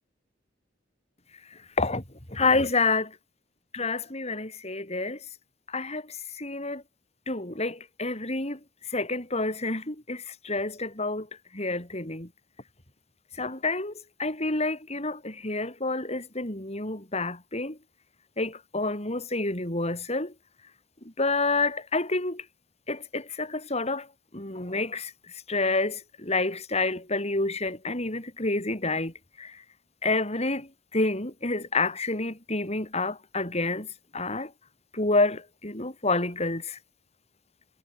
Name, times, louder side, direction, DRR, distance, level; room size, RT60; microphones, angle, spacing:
voice 1, 2.3-3.1 3.7-5.2 5.7-6.8 7.3-8.6 8.9-11.3 11.5-12.3 13.4-13.9 14.2-17.8 18.4-20.3 21.2-22.4 22.9-24.1 24.3-25.1 25.5-29.6 30.0-33.9 34.1-34.5 34.9-36.8, left 3 dB, 35° left, 5.5 m, -28 dB
head